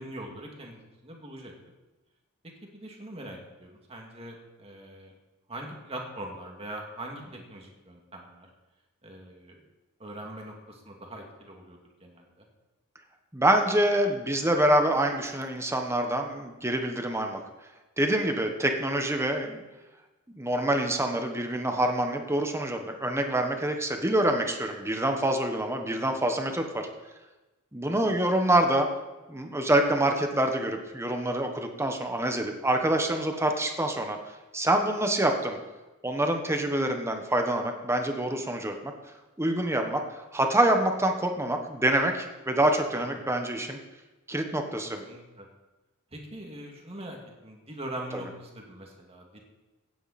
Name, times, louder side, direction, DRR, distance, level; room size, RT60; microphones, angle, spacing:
voice 1, 0.0-1.5 2.6-5.1 5.5-8.5 9.0-9.6 10.0-12.4 27.8-28.2 42.9-43.3 45.0-45.5 46.1-49.4, right 1 dB, 30° right, 0 dB, 2.3 m, -42 dB
voice 2, 13.3-17.4 18.0-19.6 20.4-26.6 27.7-28.9 29.3-34.2 34.5-35.6 36.0-38.9 39.4-43.8 44.3-45.0, right 1 dB, 10° right, 4 dB, 1.3 m, -26 dB
16.5 x 9.3 x 4.3 m, 1.1 s
head